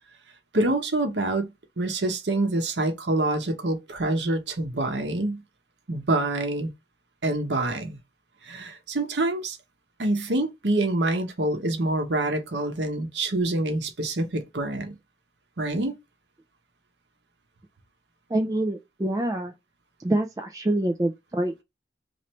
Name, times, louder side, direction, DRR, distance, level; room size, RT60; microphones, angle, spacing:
voice 1, 0.5-1.5 1.8-5.4 5.9-6.7 7.2-8.0 8.4-9.6 10.0-14.9 15.6-15.9, right 2 dB, 85° right, 0.9 m, -26 dB
voice 2, 18.3-19.5 20.0-21.6, right 1 dB, 20° right, 0.4 m, -26 dB
3.2 x 2.5 x 4.2 m
head